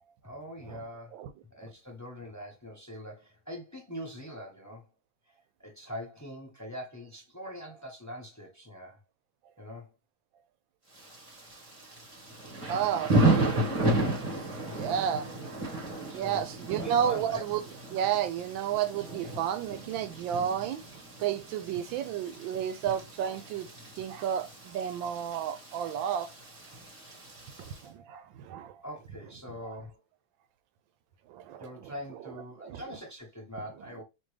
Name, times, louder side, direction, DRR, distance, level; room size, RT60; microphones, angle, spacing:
voice 1, 0.2-1.1 1.5-4.9 5.6-9.0 9.6-9.9 16.0-17.4 28.8-30.0 31.6-34.0, equal, 20° left, 0.4 m, -43 dB
Thunder / Rain, 10.9-27.8, right 2 dB, 20° right, 0.9 m, -33 dB
voice 2, 12.7-13.6 14.7-15.3 16.1-17.6 17.9-20.8 21.2-23.7 24.0-26.3 27.6-28.8 29.6-29.7 31.3-31.9 32.2-32.3 32.6-32.8, right 9 dB, 80° right, 1.3 m, -32 dB
4.3 x 2.9 x 3.2 m
omnidirectional pair, 2.1 m